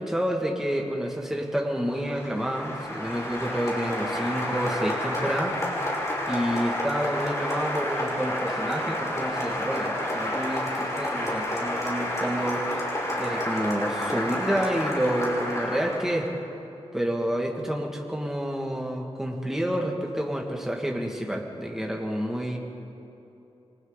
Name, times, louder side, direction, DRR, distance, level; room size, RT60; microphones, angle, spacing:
voice 1, 0.0-5.6 6.3-12.7 13.2-16.3 16.9-22.6, equal, 5° right, 0 dB, 2.1 m, -29 dB
Applause, 1.9-16.3, left 1 dB, 30° left, 5.2 m, -30 dB
28.0 x 23.5 x 4.0 m, 2.9 s
wide cardioid pair, 135°, 11 cm